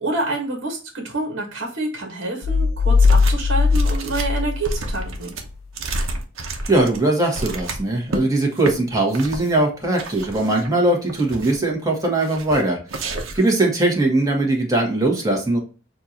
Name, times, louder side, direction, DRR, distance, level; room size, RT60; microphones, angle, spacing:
voice 1, 0.0-5.3, right 2 dB, 65° right, 1 dB, 1.4 m, -27 dB
sound 1, 2.4-5.2, left 4 dB, 80° left, 0.4 m, -18 dB
sound 2, 3.0-3.5 3.7-8.2 8.6-8.7 9.1-9.5 10.0-10.7 11.1-11.7 12.2-12.6 12.9-13.5, right 2 dB, 80° right, 0.9 m, -30 dB
voice 2, 6.7-12.8 13.3-15.6, right 2 dB, 20° right, 0 dB, 1.4 m, -20 dB
6.7 x 2.6 x 2.8 m, 0.35 s
head